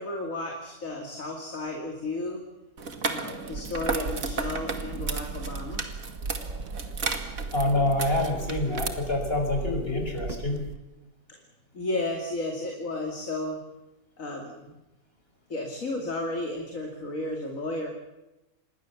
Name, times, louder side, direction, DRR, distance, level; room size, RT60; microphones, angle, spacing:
voice 1, 0.0-2.4 3.1-5.8 11.3-11.4 11.7-13.6 14.2-14.8 15.5-17.9, left 2 dB, 75° left, 1 dB, 2.9 m, -33 dB
sound 1, 2.8-8.9, right 4 dB, 85° right, 2.2 m, -34 dB
sound 2, 3.5-10.8, right 4 dB, 60° right, 1.8 m, -37 dB
voice 2, 7.5-10.6, left 2 dB, 45° left, 4 dB, 5.5 m, -26 dB
27.0 x 21.0 x 7.2 m, 1.0 s
omnidirectional pair, 1.4 m